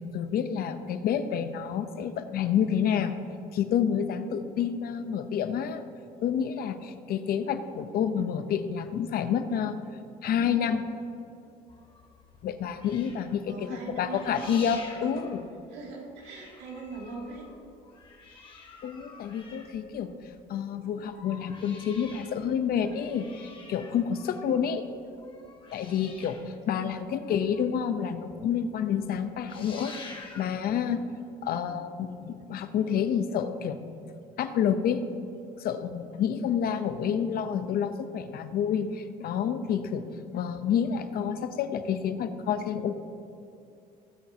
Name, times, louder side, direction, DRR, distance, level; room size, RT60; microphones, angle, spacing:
voice 1, 0.1-3.1 3.5-5.8 6.2-9.8 10.2-10.8 12.4-13.5 14.0-15.4 18.8-20.1 20.5-24.8 25.7-31.0 31.4-33.8 34.4-35.0 35.6-40.1 40.3-42.9, left 8 dB, 65° left, 9 dB, 0.8 m, -29 dB
sound 1, 11.7-15.9 16.2-20.4 20.9-27.9 28.3-28.4 28.7-29.0 29.3-30.7 31.4-31.5, left 3 dB, 30° left, 2.2 m, -49 dB
voice 2, 13.5-14.6 15.1-15.4 15.7-17.5 26.8-27.1, right 3 dB, 85° right, -2 dB, 2.6 m, -41 dB
19.5 x 8.9 x 2.9 m, 2.7 s
cardioid pair, 110°, 17 cm